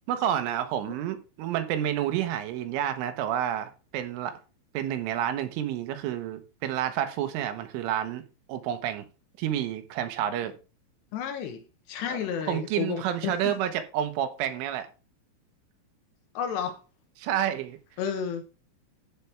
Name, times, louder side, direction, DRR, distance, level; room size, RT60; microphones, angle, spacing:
voice 1, 0.1-4.3 4.8-8.2 8.5-9.1 9.4-10.5 12.1-14.9 17.2-17.8, right 10 dB, 85° right, 3.6 m, -29 dB
voice 2, 11.1-13.6 16.3-16.8 18.0-18.4, left 8 dB, 70° left, 2.9 m, -32 dB
15.0 x 5.8 x 3.4 m
omnidirectional pair, 5.6 m